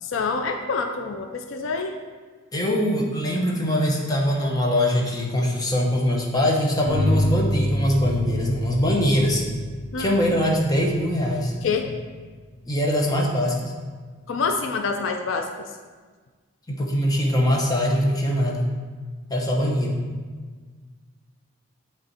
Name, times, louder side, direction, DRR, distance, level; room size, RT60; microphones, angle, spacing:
voice 1, 0.0-2.0 9.9-10.2 11.6-11.9 14.3-15.7, left 4 dB, 70° left, 5 dB, 0.4 m, -27 dB
voice 2, 2.5-9.4 10.0-11.5 12.6-13.7 16.7-18.6 19.3-20.0, equal, 20° left, -1 dB, 0.8 m, -22 dB
sound 1, 6.9-12.0, left 1 dB, 30° right, 1.1 m, -27 dB
8.0 x 3.5 x 4.3 m, 1.5 s
head